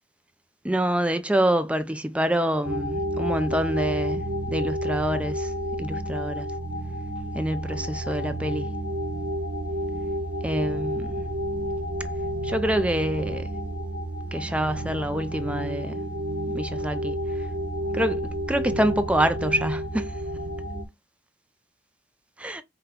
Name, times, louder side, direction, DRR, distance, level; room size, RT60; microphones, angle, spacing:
voice 1, 0.6-5.5 5.8-6.5 7.3-8.7 10.4-11.2 12.4-13.5 14.3-16.0 16.5-17.2 17.9-20.1 22.4-22.6, right 1 dB, 5° right, 0.4 m, -26 dB
sound 1, 2.6-20.8, equal, 85° right, 0.9 m, -30 dB
5.7 x 2.2 x 3.5 m
head